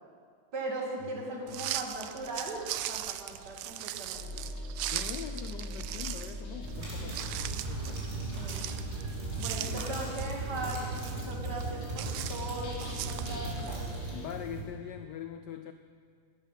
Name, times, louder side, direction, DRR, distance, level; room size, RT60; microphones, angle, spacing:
voice 1, 0.5-4.4 8.4-8.7 9.4-13.8, right 2 dB, 50° right, -1 dB, 2.6 m, -39 dB
voice 2, 1.1-1.7 4.9-7.4 7.7-8.1 9.6-10.0 14.1-15.7, left 10 dB, 75° left, 9 dB, 1.0 m, -43 dB
sound 1, 1.5-13.7, right 13 dB, 90° right, 1.5 m, -40 dB
sound 2, 4.1-14.3, left 1 dB, 35° left, 1.7 m, -43 dB
sound 3, 6.6-14.6, right 2 dB, 30° right, 3.3 m, -37 dB
13.0 x 12.5 x 5.6 m, 2.1 s
omnidirectional pair, 2.3 m